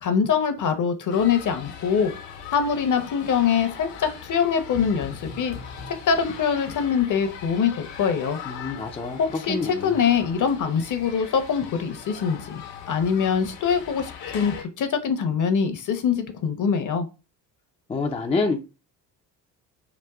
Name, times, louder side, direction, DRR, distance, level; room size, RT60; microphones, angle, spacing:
voice 1, 0.0-2.1 2.5-5.6 5.9-8.4 9.5-9.6 9.8-17.1, left 7 dB, 40° left, 0.9 m, -23 dB
sound 1, 1.1-14.6, left 7 dB, 65° left, 1.2 m, -40 dB
voice 2, 8.4-10.0 17.9-18.6, left 3 dB, 15° left, 0.5 m, -27 dB
5.1 x 2.5 x 2.3 m
hypercardioid pair, 55°, 48 cm